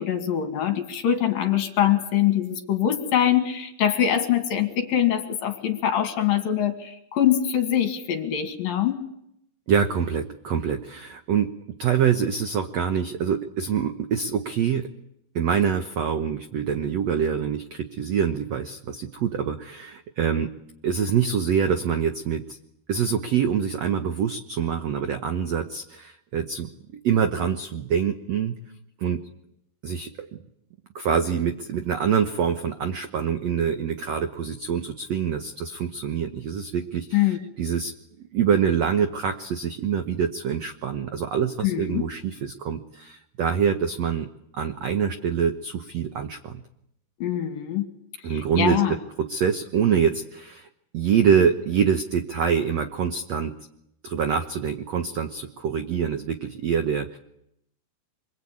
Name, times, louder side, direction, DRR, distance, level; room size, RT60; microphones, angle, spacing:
voice 1, 0.0-9.0 37.1-37.4 41.6-42.0 47.2-47.9 48.3-49.0, left 10 dB, 65° left, 6 dB, 3.6 m, -23 dB
voice 2, 9.7-14.9 15.3-20.5 20.8-22.6 22.9-28.5 29.0-29.2 29.8-30.3 30.9-37.9 38.2-44.3 44.5-46.6 48.2-50.7 50.9-53.5 54.0-57.2, right 7 dB, 80° right, 8 dB, 1.5 m, -25 dB
26.5 x 23.0 x 8.7 m, 0.78 s
omnidirectional pair, 4.7 m